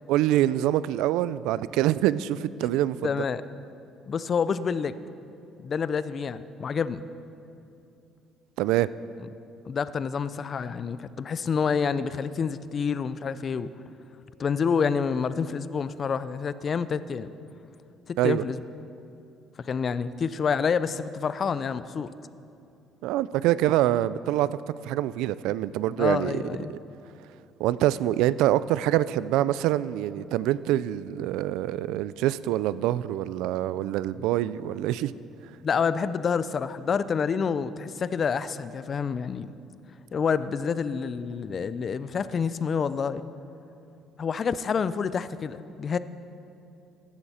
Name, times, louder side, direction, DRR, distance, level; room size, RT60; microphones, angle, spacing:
voice 1, 0.1-3.3 8.6-8.9 18.2-18.4 23.0-24.5 24.8-26.4 26.7-26.8 27.6-35.1, right 13 dB, 85° right, 17 dB, 0.3 m, -25 dB
voice 2, 3.0-3.4 4.1-5.0 5.6-7.0 9.7-13.7 14.4-17.3 18.1-18.6 19.6-22.1 26.0-26.7 35.6-39.6 40.1-43.2 44.2-46.0, left 6 dB, 35° left, 15 dB, 0.4 m, -28 dB
15.0 x 11.5 x 4.3 m, 2.7 s
cardioid pair, 135°, 0 cm